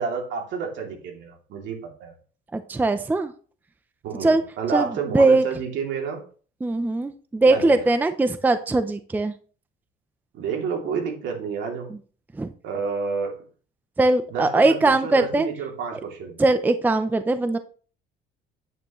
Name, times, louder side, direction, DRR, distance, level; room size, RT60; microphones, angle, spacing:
voice 1, 0.0-2.1 4.0-6.2 7.5-7.8 10.3-11.9 12.6-13.3 14.3-16.4, right 5 dB, 70° right, 1 dB, 2.7 m, -29 dB
voice 2, 2.5-3.3 4.2-4.4 4.7-4.9 5.1-5.4 6.6-9.3 12.3-12.5 14.0-15.5 16.4-17.6, right 2 dB, 10° right, 10 dB, 0.5 m, -20 dB
9.3 x 8.7 x 3.1 m, 0.40 s
cardioid pair, 135°, 20 cm